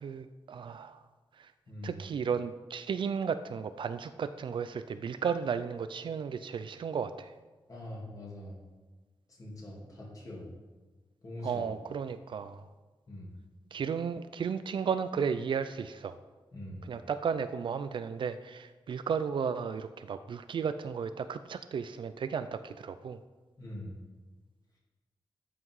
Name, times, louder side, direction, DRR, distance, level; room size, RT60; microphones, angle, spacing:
voice 1, 0.0-1.0 1.4-1.5 1.8-7.3 11.4-12.6 13.7-16.2 16.8-23.2, right 6 dB, 60° right, 11 dB, 0.4 m, -34 dB
voice 2, 1.7-2.0 7.7-8.6 9.4-10.5 11.2-11.6 13.1-13.3 16.5-16.8 23.6-23.9, left 1 dB, 40° left, -4 dB, 2.8 m, -43 dB
13.0 x 5.8 x 4.8 m, 1.3 s
wide cardioid pair, 175°, 9 cm